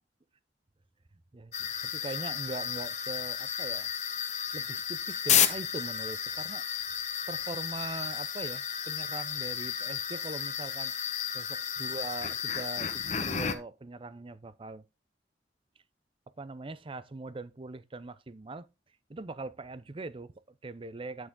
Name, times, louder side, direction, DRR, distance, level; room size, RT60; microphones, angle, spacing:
voice 1, 1.3-3.9 4.5-6.6 7.3-10.9 11.3-14.8 16.4-18.7 19.1-21.3, right 3 dB, 30° right, 0.6 m, -41 dB
sound 1, 1.5-13.6, left 8 dB, 40° left, 1.0 m, -32 dB
10.5 x 6.2 x 3.7 m
head